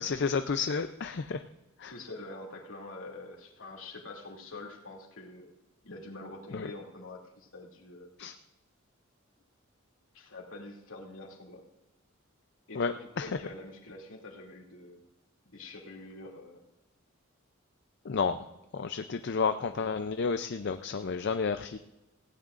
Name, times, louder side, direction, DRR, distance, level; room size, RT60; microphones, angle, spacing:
voice 1, 0.0-1.4 1.8-1.9 6.5-6.7 8.2-8.3 12.7-13.3 18.0-18.4 18.7-21.8, left 5 dB, 55° left, 9 dB, 0.5 m, -31 dB
voice 2, 1.9-5.5 5.8-8.1 10.1-11.7 12.7-15.0 15.4-16.6, left 2 dB, 75° left, -1 dB, 2.7 m, -45 dB
18.0 x 16.5 x 2.5 m, 0.97 s
head